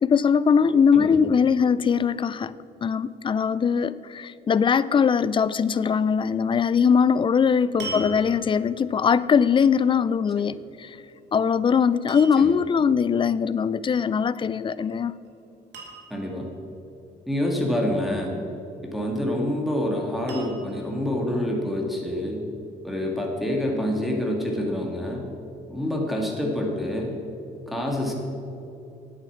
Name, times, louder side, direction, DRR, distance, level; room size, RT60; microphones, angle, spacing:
voice 1, 0.0-2.5 2.8-11.0 11.3-15.1, left 6 dB, 30° left, 18 dB, 0.4 m, -21 dB
sound 1, 6.8-7.1 7.8-8.7 11.1-11.4 12.1-12.6 14.6-14.9 15.2-15.3 15.7-16.4 18.7-19.3 20.3-20.9 21.7-21.8, right 3 dB, 75° right, 2.6 m, -40 dB
voice 2, 16.1-16.5 17.3-18.3 18.8-22.4 22.8-25.2 25.7-27.2 27.7-28.1, left 1 dB, ahead, -1 dB, 2.1 m, -27 dB
9.3 x 8.9 x 7.3 m, 2.8 s
cardioid pair, 80°, 18 cm